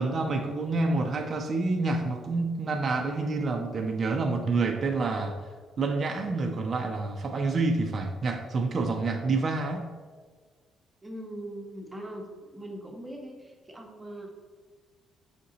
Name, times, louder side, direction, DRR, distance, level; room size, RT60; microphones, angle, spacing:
voice 1, 0.0-5.4 5.8-9.9, right 3 dB, 40° right, 3 dB, 0.4 m, -28 dB
voice 2, 11.0-14.3, right 1 dB, 10° right, 1 dB, 0.8 m, -41 dB
5.1 x 2.7 x 3.8 m, 1.5 s
cardioid pair, 100°, 0 cm